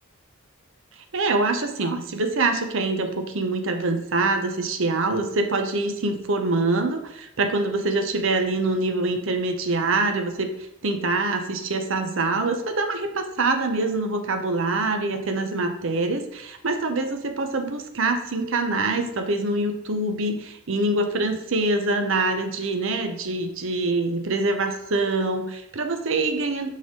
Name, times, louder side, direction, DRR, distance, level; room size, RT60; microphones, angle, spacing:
voice 1, 1.1-10.5 10.8-26.7, right 2 dB, 65° right, 6 dB, 0.7 m, -25 dB
6.3 x 5.4 x 3.7 m, 0.84 s
head